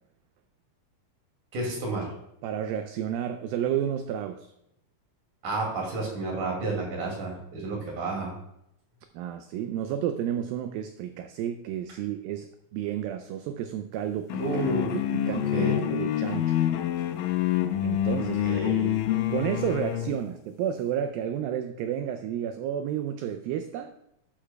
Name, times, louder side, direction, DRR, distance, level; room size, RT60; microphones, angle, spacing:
voice 1, 1.5-2.1 5.4-8.3 14.4-14.9 15.3-15.8 18.5-18.9, right 3 dB, 55° right, -1 dB, 3.6 m, -31 dB
voice 2, 2.4-4.5 9.1-16.6 17.8-18.4 19.3-23.9, right 9 dB, 80° right, 7 dB, 2.2 m, -31 dB
sound 1, 14.3-20.2, left 11 dB, 90° left, 1.9 m, -27 dB
12.0 x 8.7 x 2.3 m, 0.80 s
omnidirectional pair, 4.5 m